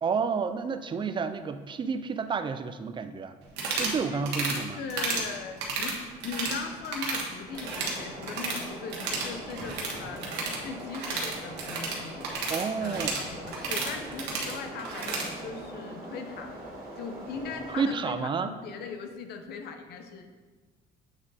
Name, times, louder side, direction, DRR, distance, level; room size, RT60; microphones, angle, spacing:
voice 1, 0.0-3.4 3.8-4.8 12.5-13.1 17.7-18.5, right 5 dB, 30° right, 10 dB, 0.4 m, -30 dB
sound 1, 3.5-4.0 4.3-4.6 4.9-5.3 5.6-6.6 6.8-7.3 7.5-8.6 8.9-15.3, right 4 dB, 85° right, 1.2 m, -32 dB
voice 2, 4.0-12.3 12.8-16.5 17.0-20.3, left 5 dB, 70° left, 6 dB, 0.8 m, -39 dB
sound 2, 7.5-17.9, right 1 dB, 60° right, 1.7 m, -42 dB
7.9 x 3.7 x 4.0 m, 1.4 s
cardioid pair, 110°, 17 cm